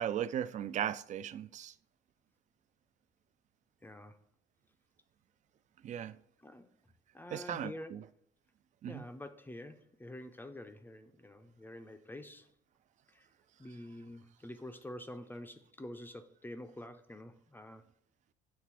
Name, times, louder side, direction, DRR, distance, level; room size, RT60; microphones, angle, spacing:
voice 1, 0.0-1.7 5.8-6.2 7.3-8.0 8.8-9.0, right 10 dB, 45° right, 0.4 m, -37 dB
voice 2, 3.8-4.2 6.4-6.7 7.1-8.0 8.9-12.5 13.1-13.3 13.6-17.8, left 1 dB, 10° left, 0.5 m, -47 dB
7.5 x 3.3 x 4.7 m
cardioid pair, 110°, 17 cm